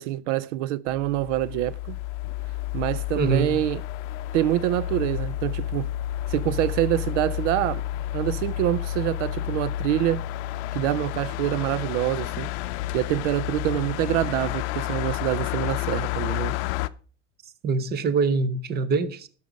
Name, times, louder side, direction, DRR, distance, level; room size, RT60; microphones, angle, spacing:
voice 1, 0.0-2.0 2.7-3.8 4.3-5.9 6.3-7.8 8.1-10.2 10.7-12.5 12.9-16.6, right 14 dB, 75° right, 0.5 m, -26 dB
sound 1, 0.9-16.9, left 14 dB, 65° left, 0.6 m, -30 dB
voice 2, 3.2-3.5 17.6-19.3, right 4 dB, 25° right, 0.8 m, -24 dB
12.0 x 6.7 x 5.0 m
supercardioid pair, 130°, 37 cm